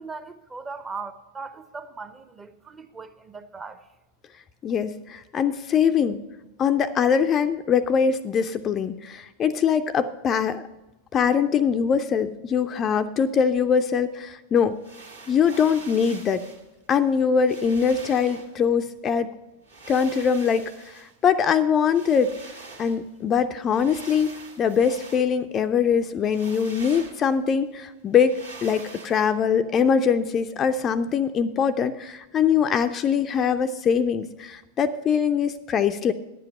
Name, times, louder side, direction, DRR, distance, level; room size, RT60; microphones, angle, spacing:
voice 1, 0.0-3.8, right 4 dB, 15° right, 0.7 m, -38 dB
voice 2, 4.6-6.2 6.6-10.6 11.1-14.8 15.3-16.4 16.9-19.3 19.9-22.3 22.8-28.3 28.6-36.1, left 7 dB, 25° left, 0.4 m, -22 dB
sound 1, 14.7-16.7 17.1-17.2 17.5-18.6 19.6-21.3 21.9-23.1 23.7-25.3 26.2-27.3 28.2-29.3, right 3 dB, 80° right, 1.7 m, -44 dB
10.5 x 7.7 x 5.5 m
figure-of-eight pair, 90°, 0 cm